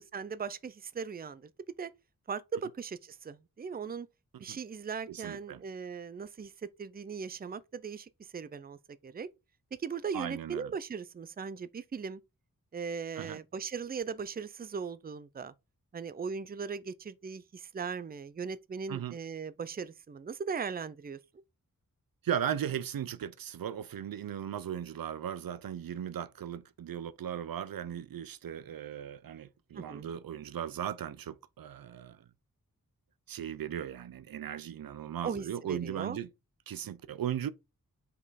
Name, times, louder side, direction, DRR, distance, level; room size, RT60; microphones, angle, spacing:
voice 1, 0.0-1.5 1.8-1.9 2.3-4.1 4.4-9.3 9.8-12.2 12.7-15.5 15.9-21.2 29.7-30.1 35.2-36.2, right 6 dB, 25° right, 0.5 m, -38 dB
voice 2, 5.1-5.6 10.1-10.7 13.2-13.4 18.9-19.2 22.2-32.2 33.3-36.3 36.7-37.5, right 9 dB, 80° right, 0.6 m, -37 dB
5.3 x 5.2 x 4.1 m
wide cardioid pair, 110°, 34 cm